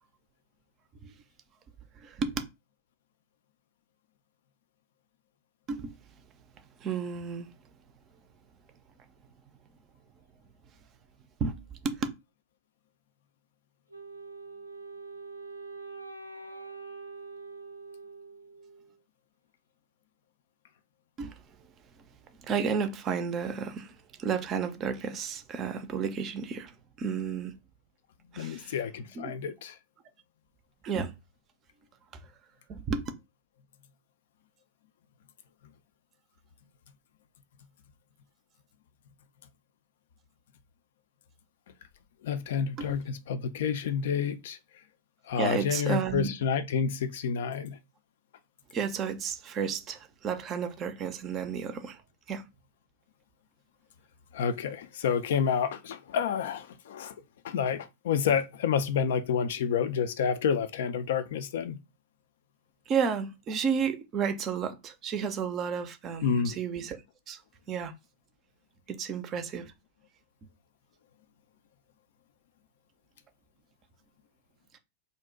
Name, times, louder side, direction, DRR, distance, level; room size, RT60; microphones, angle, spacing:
voice 1, 2.0-2.4 5.7-5.9 6.8-7.5 11.4-12.1 21.2-21.4 22.5-26.7 27.0-27.6 28.3-28.7 29.2-29.3 30.8-31.1 32.7-33.1 42.8-43.0 45.4-46.3 48.7-52.0 52.3-52.4 62.9-67.0 67.3-67.4 67.7-67.9 68.9-69.7 74.7-74.8, right 6 dB, 30° right, 0.5 m, -32 dB
Wind instrument woodwind instrument, 13.9-19.0, right 3 dB, 90° right, 0.3 m, -44 dB
voice 2, 28.4-29.8 42.2-44.6 45.3-47.8 54.3-57.2 57.4-61.8 66.2-66.6, left 7 dB, 60° left, 0.3 m, -29 dB
2.5 x 2.1 x 3.6 m
figure-of-eight pair, 90°, 0 cm